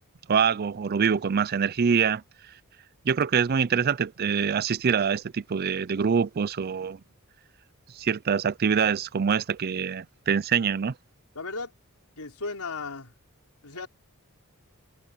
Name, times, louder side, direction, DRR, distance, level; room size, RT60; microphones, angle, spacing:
voice 1, 0.3-2.2 3.1-7.0 8.0-10.9, right 6 dB, 45° right, 0.4 m, -25 dB
voice 2, 11.4-11.7 12.2-13.1 13.6-13.9, left 3 dB, 80° left, 4.0 m, -35 dB
head